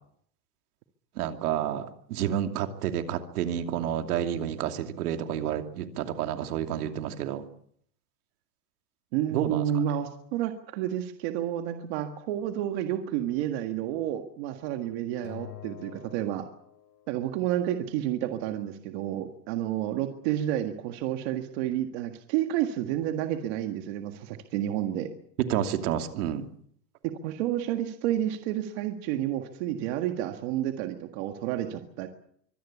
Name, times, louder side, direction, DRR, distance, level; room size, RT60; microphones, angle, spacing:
voice 1, 1.2-7.4 9.3-9.6 25.5-26.4, right 10 dB, 60° right, 6 dB, 2.8 m, -30 dB
voice 2, 9.1-16.5 17.1-25.1 27.2-32.1, right 11 dB, 40° right, 6 dB, 1.8 m, -30 dB
Acoustic guitar, 15.2-17.6, left 12 dB, 75° left, 4.8 m, -47 dB
24.5 x 17.5 x 8.5 m, 0.66 s
supercardioid pair, 175°, 50 cm